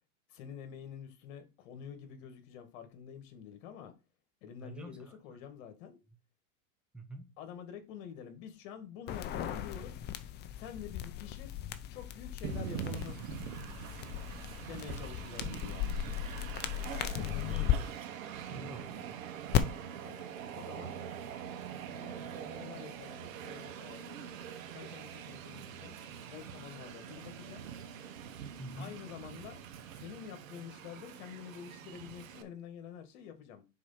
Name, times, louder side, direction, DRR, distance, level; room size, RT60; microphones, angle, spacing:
voice 1, 0.3-3.9 4.4-6.0 7.4-9.9 10.6-11.5 11.9-13.2 14.7-16.0 20.0-20.3 20.5-21.0 21.9-24.4 24.7-26.0 26.3-27.7 28.8-29.6 30.0-33.6, left 8 dB, 60° left, 1.9 m, -48 dB
voice 2, 4.6-5.4 6.9-7.3 17.4-18.0 18.5-19.2 28.6-29.0, right 1 dB, ahead, 0.8 m, -47 dB
sound 1, 9.1-17.7 19.5-19.6, left 12 dB, 25° left, 0.5 m, -36 dB
Train, 12.4-32.4, right 8 dB, 70° right, 1.3 m, -44 dB
4.8 x 4.2 x 5.8 m
hypercardioid pair, 125°, 42 cm